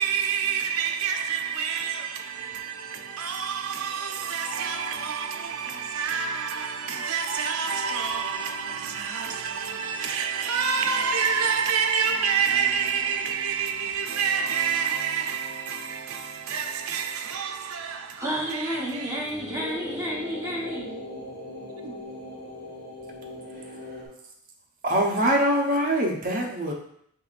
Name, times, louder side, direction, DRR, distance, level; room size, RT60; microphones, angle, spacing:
voice 1, 0.0-18.2 18.5-19.2 21.8-22.0, right 6 dB, 80° right, 0.5 m, -28 dB
voice 2, 18.2-21.0, equal, 15° right, 1.1 m, -30 dB
sound 1, 18.7-24.1, left 1 dB, 55° left, 1.5 m, -39 dB
voice 3, 23.5-24.1 24.8-26.7, right 1 dB, 40° right, 0.8 m, -24 dB
5.5 x 3.1 x 2.5 m
head